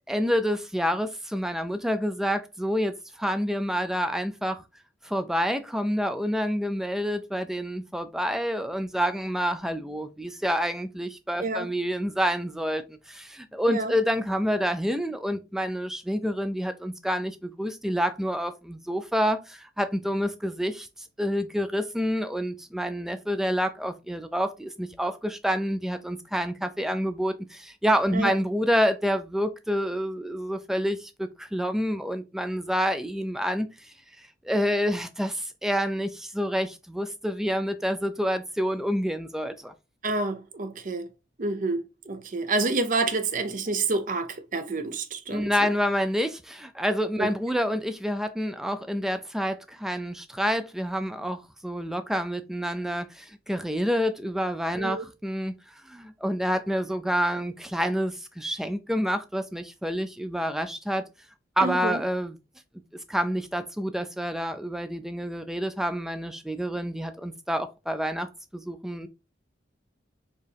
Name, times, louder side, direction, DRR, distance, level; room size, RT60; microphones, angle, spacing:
voice 1, 0.1-4.6 5.0-39.7 45.3-55.5 55.9-61.0 61.6-62.3 63.1-68.3 68.5-69.1, equal, ahead, 0.3 m, -28 dB
voice 2, 40.0-41.1 41.4-41.8 42.1-45.7 47.2-47.3 54.8-55.0 61.6-62.0, right 3 dB, 45° right, 0.6 m, -28 dB
4.4 x 3.0 x 3.3 m
head